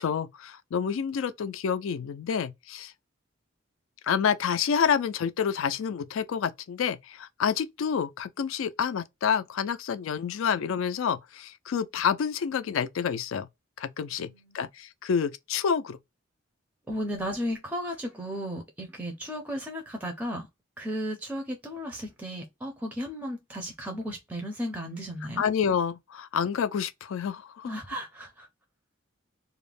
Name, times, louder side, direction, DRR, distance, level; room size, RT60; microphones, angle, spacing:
voice 1, 0.0-2.9 4.0-13.5 13.8-16.0 25.4-27.7, left 7 dB, 75° left, 0.3 m, -28 dB
voice 2, 14.2-14.6 16.9-20.5 20.8-25.4 27.7-28.5, equal, 5° right, 0.4 m, -35 dB
2.4 x 2.0 x 3.2 m
head